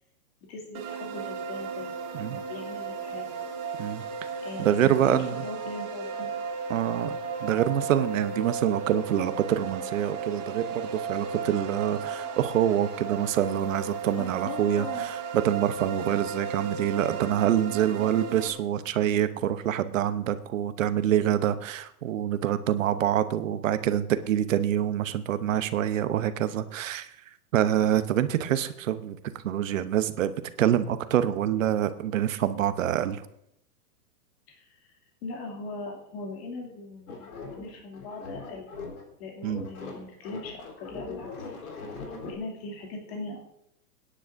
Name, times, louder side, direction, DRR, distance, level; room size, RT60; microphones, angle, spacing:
voice 1, 0.5-1.9 2.2-3.4 4.4-6.3 6.8-7.1 14.1-15.1 34.5-34.8 35.2-38.7 39.2-41.3 42.2-43.4, left 3 dB, 40° left, -1 dB, 2.7 m, -40 dB
sound 1, 0.7-18.5, right 5 dB, 25° right, 1.6 m, -35 dB
voice 2, 4.6-5.4 6.7-27.1 27.5-29.2 29.4-30.3 30.6-33.2 39.4-39.6, right 11 dB, 55° right, 12 dB, 0.9 m, -26 dB
sound 2, 37.1-39.1 39.4-42.3, left 3 dB, 65° left, 3.8 m, -40 dB
26.5 x 10.0 x 2.6 m, 0.79 s
hypercardioid pair, 170°, 46 cm